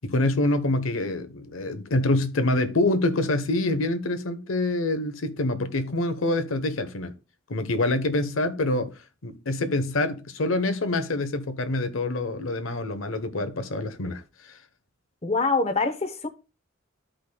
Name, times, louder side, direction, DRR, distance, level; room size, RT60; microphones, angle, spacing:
voice 1, 0.0-7.1 7.5-8.9 9.2-14.2, left 2 dB, 85° left, 0.9 m, -26 dB
voice 2, 15.2-16.3, left 3 dB, 30° left, 0.8 m, -24 dB
13.5 x 5.1 x 2.2 m
head